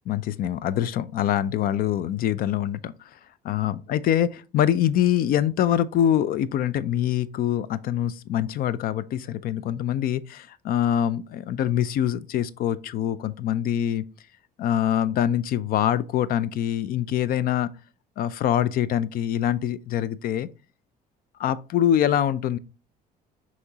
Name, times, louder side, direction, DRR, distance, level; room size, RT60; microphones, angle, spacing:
voice 1, 0.1-3.2 3.5-14.0 14.6-17.7 18.2-20.5 21.4-22.6, left 10 dB, 60° left, 0.4 m, -24 dB
5.8 x 3.1 x 2.8 m
cardioid pair, 110°, 17 cm